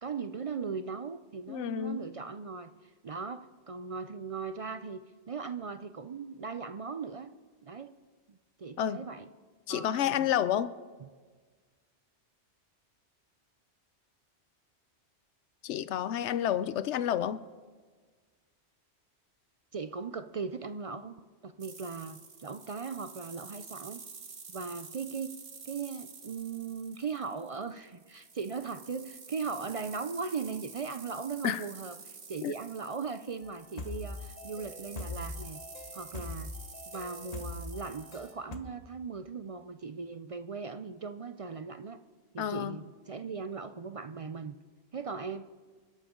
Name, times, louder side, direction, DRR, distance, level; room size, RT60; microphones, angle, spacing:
voice 1, 0.0-7.3 7.6-7.9 8.3-9.3 9.7-10.3 19.7-21.2 21.4-24.0 24.5-25.4 25.6-35.6 35.9-36.5 36.9-42.0 42.3-44.5 44.9-45.4, right 5 dB, 50° right, 11 dB, 0.4 m, -38 dB
voice 2, 1.5-2.0 8.8-9.1 9.7-10.7 15.6-17.4 31.4-31.6 32.4-32.5 42.4-42.8, left 10 dB, 90° left, 14 dB, 0.9 m, -30 dB
sound 1, 21.6-38.3, right 5 dB, 90° right, 1.7 m, -49 dB
sound 2, 33.4-38.6, left 3 dB, 35° left, 1.1 m, -42 dB
26.5 x 11.5 x 3.7 m, 1.5 s
omnidirectional pair, 1.1 m